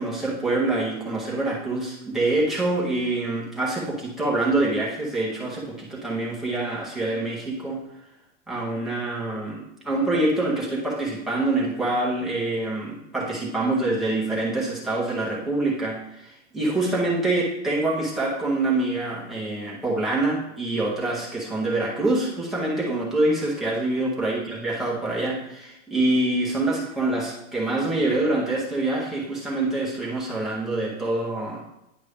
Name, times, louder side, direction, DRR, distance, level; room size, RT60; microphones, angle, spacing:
voice 1, 0.0-7.8 8.5-31.6, right 2 dB, ahead, -6 dB, 0.6 m, -25 dB
9.7 x 5.1 x 3.4 m, 0.86 s
supercardioid pair, 180°, 38 cm